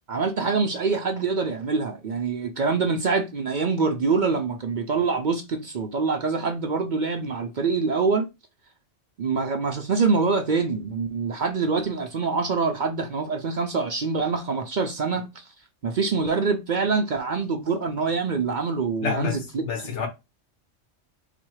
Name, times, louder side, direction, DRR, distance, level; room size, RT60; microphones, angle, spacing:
voice 1, 0.1-8.3 9.2-15.5 15.8-19.6, right 4 dB, 50° right, 0.6 m, -25 dB
voice 2, 19.0-20.1, left 6 dB, 75° left, 1.3 m, -28 dB
4.1 x 2.2 x 4.6 m
omnidirectional pair, 1.2 m